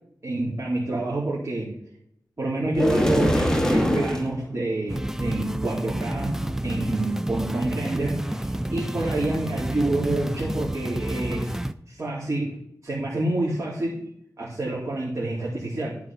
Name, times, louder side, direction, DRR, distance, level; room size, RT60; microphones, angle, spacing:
voice 1, 0.2-1.7 2.4-11.6 11.9-12.5 12.8-14.0 14.4-16.0, right 2 dB, 45° right, -5 dB, 2.7 m, -28 dB
sound 1, 2.8-4.3, equal, 10° left, 1.2 m, -22 dB
sound 2, 4.9-11.7, right 1 dB, 5° right, 0.4 m, -30 dB
12.0 x 4.6 x 5.9 m, 0.73 s
wide cardioid pair, 90°, 7 cm